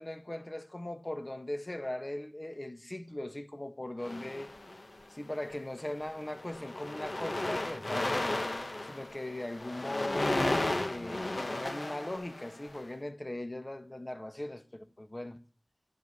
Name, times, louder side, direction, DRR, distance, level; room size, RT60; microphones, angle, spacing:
voice 1, 0.0-4.5 5.1-8.3 8.8-15.4, left 1 dB, 35° left, 1.6 m, -39 dB
sound 1, 4.0-5.0 5.8-6.0 6.3-12.8, left 2 dB, 65° left, 2.2 m, -34 dB
12.5 x 10.5 x 9.9 m
wide cardioid pair, 40°, 0 cm